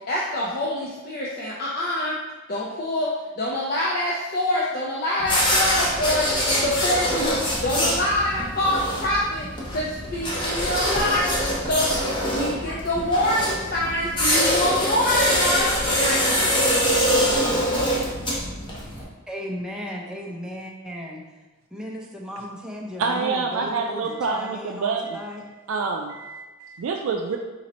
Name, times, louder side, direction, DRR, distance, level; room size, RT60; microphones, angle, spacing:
voice 1, 0.1-2.1 2.5-6.3 6.6-16.6, left 1 dB, 45° left, -4 dB, 0.5 m, -26 dB
sound 1, 5.2-19.0, equal, 25° left, 0.8 m, -24 dB
voice 2, 19.3-21.2 21.7-25.4, equal, 5° right, -2 dB, 0.5 m, -35 dB
voice 3, 23.0-25.2 25.7-27.4, right 4 dB, 80° right, 1 dB, 0.4 m, -27 dB
4.1 x 2.9 x 4.1 m, 1.2 s
head